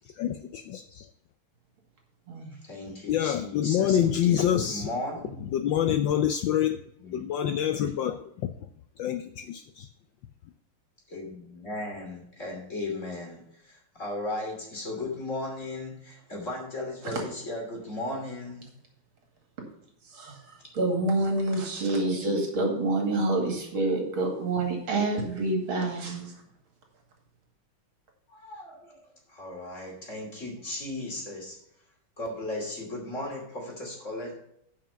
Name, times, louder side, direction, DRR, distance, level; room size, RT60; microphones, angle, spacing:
voice 1, 0.2-1.1 3.1-4.9 5.5-6.8 7.1-8.2 9.0-9.9, left 10 dB, 70° left, 9 dB, 1.2 m, -26 dB
voice 2, 2.5-5.5 7.0-7.3 11.1-18.7 28.3-29.0 29.3-31.6 32.2-34.3, left 2 dB, 35° left, 1 dB, 3.0 m, -36 dB
voice 3, 20.0-26.3, right 2 dB, 70° right, 2 dB, 3.1 m, -27 dB
9.7 x 5.9 x 5.6 m, 0.75 s
omnidirectional pair, 2.4 m